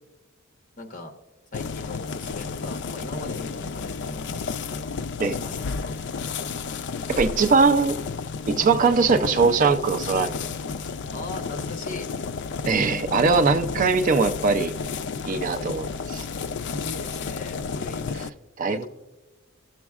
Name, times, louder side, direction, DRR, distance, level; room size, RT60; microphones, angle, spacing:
voice 1, 0.8-1.1 1.5-4.8 5.2-5.9 11.1-12.1 16.6-18.1 18.6-18.9, left 2 dB, 40° left, 4 dB, 1.1 m, -39 dB
sound 1, 1.5-18.3, left 5 dB, 55° left, 0.4 m, -32 dB
voice 2, 7.1-8.0 8.5-10.4 12.7-14.7 15.2-16.2 18.6-18.9, right 4 dB, 40° right, 8 dB, 0.4 m, -21 dB
17.5 x 7.1 x 2.4 m, 1.2 s
head